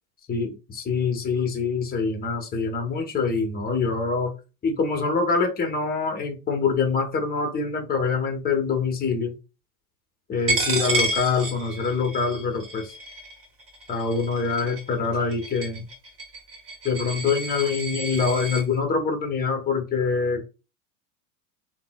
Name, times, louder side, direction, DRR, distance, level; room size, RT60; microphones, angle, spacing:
voice 1, 0.3-4.3 4.6-9.3 10.3-12.9 13.9-15.9 16.8-20.4, left 5 dB, 20° left, 4 dB, 0.9 m, -25 dB
Coin (dropping), 10.5-18.6, right 2 dB, 30° right, 1.2 m, -30 dB
3.6 x 2.1 x 2.3 m, 0.31 s
hypercardioid pair, 95°, 46 cm